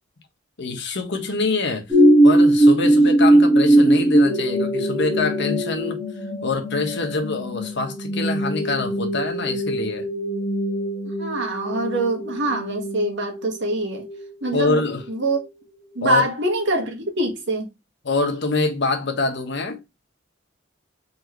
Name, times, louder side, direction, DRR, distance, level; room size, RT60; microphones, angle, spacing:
voice 1, 0.6-2.0 2.2-6.0 6.4-10.1 14.5-15.0 16.0-16.2 18.0-19.8, left 3 dB, 60° left, 1.3 m, -25 dB
sound 1, 1.9-15.4 16.0-16.1, right 1 dB, 15° right, 2.1 m, -20 dB
voice 2, 11.0-14.1 14.4-15.4 15.9-17.7, right 1 dB, 60° right, 1.6 m, -24 dB
4.1 x 4.0 x 3.0 m
head